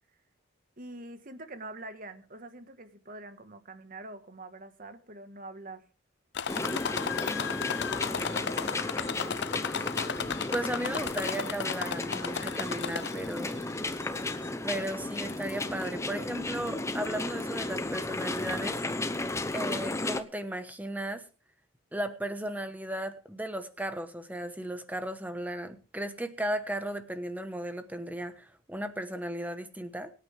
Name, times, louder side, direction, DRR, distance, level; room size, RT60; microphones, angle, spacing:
voice 1, 0.8-5.9, right 2 dB, 45° right, 9 dB, 1.5 m, -45 dB
sound 1, 6.3-13.4 13.9-14.5 15.3-15.4 15.8-15.9, left 7 dB, 55° left, 0.6 m, -34 dB
sound 2, 6.5-20.2, left 2 dB, 15° left, 0.8 m, -34 dB
voice 2, 10.5-13.7 14.7-18.8 19.5-21.2 21.9-30.1, right 1 dB, 10° right, 9 dB, 1.2 m, -35 dB
23.5 x 9.4 x 3.5 m, 0.36 s
head